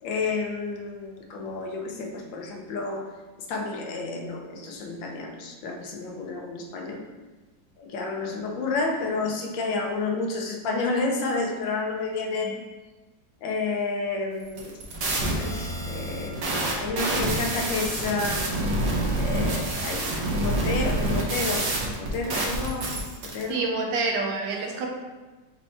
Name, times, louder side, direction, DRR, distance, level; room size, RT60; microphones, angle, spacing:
voice 1, 0.0-3.1 3.5-7.0 7.8-12.5 13.4-14.7 15.3-18.5 19.2-21.7 22.0-23.0 23.2-23.7, left 3 dB, 85° left, 2 dB, 1.5 m, -30 dB
voice 2, 12.2-12.5 23.5-24.9, right 3 dB, 75° right, 1 dB, 1.4 m, -28 dB
sound 1, 14.5-23.4, right 1 dB, 60° right, 1.2 m, -27 dB
4.4 x 2.7 x 4.2 m, 1.2 s
omnidirectional pair, 2.0 m